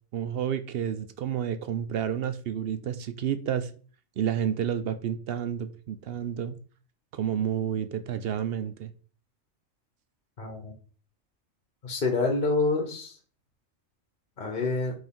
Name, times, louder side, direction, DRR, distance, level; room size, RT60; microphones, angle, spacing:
voice 1, 0.1-3.7 4.2-6.6 7.1-8.9, right 9 dB, 60° right, 11 dB, 0.6 m, -30 dB
voice 2, 10.4-10.7 11.8-13.1 14.4-14.9, left 3 dB, 45° left, 3 dB, 1.2 m, -27 dB
4.9 x 3.9 x 5.3 m, 0.41 s
omnidirectional pair, 1.4 m